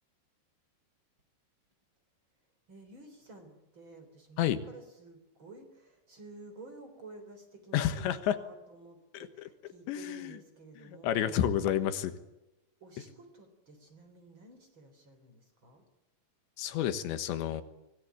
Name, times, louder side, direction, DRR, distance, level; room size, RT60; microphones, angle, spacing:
voice 1, 2.7-11.4 12.8-15.8, right 2 dB, 30° right, 7 dB, 4.1 m, -52 dB
voice 2, 7.7-8.4 9.1-9.3 9.9-10.4 10.8-12.1 16.6-17.6, left 10 dB, 85° left, 10 dB, 3.6 m, -30 dB
24.5 x 18.5 x 9.4 m, 0.95 s
omnidirectional pair, 5.2 m